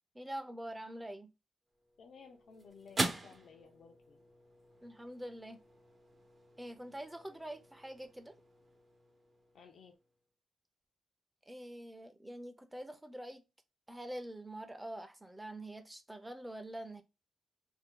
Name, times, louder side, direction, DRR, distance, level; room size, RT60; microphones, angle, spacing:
voice 1, 0.1-1.3 4.8-5.6 6.6-8.3 11.5-13.4 13.9-17.0, right 1 dB, 15° right, 0.6 m, -45 dB
sound 1, 1.7-10.2, right 2 dB, 45° right, 0.8 m, -44 dB
voice 2, 2.0-4.2 9.5-10.0, left 5 dB, 75° left, 0.5 m, -56 dB
2.7 x 2.1 x 3.7 m
cardioid pair, 60°, 0 cm